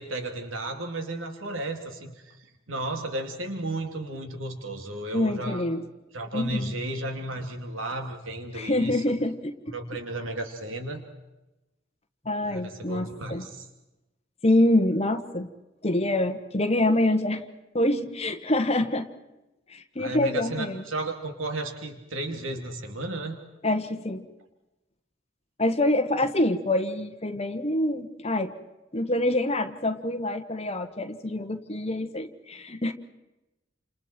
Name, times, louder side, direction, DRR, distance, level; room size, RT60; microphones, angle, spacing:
voice 1, 0.0-2.1 2.7-5.6 6.1-9.0 9.7-11.0 12.4-13.6 20.0-23.4, right 2 dB, 90° right, 4 dB, 2.8 m, -33 dB
voice 2, 5.1-5.8 6.3-6.7 8.5-9.5 12.2-13.4 14.4-15.5 15.8-17.4 17.7-19.1 19.7-20.8 23.6-24.2 25.6-28.5 28.9-32.9, left 1 dB, 30° left, 6 dB, 1.5 m, -26 dB
29.5 x 27.5 x 4.5 m, 0.99 s
head